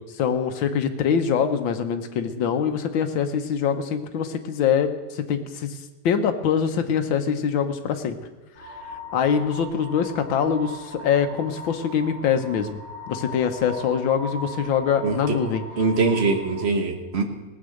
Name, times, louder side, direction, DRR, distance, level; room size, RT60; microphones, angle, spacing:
voice 1, 0.1-5.8 6.1-8.2 9.1-12.8 13.1-15.6, left 7 dB, 85° left, 8 dB, 1.7 m, -24 dB
sound 1, 8.6-16.6, equal, 50° left, 5.3 m, -39 dB
voice 2, 15.0-15.3 15.8-17.2, right 4 dB, 35° right, 5 dB, 1.4 m, -22 dB
18.0 x 8.2 x 6.5 m, 1.2 s
omnidirectional pair, 2.1 m